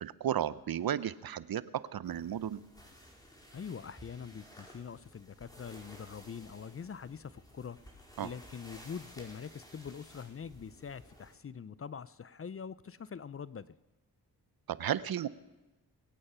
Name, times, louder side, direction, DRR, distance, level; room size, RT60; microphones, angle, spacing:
voice 1, 0.0-2.6 8.2-8.3 14.7-15.3, right 10 dB, 60° right, 17 dB, 0.7 m, -34 dB
sound 1, 2.0-11.3, equal, 10° left, 4.6 m, -55 dB
voice 2, 3.5-7.8 8.2-13.7, left 6 dB, 35° left, 17 dB, 0.6 m, -44 dB
22.5 x 8.7 x 5.6 m, 1.1 s
cardioid pair, 50°, 40 cm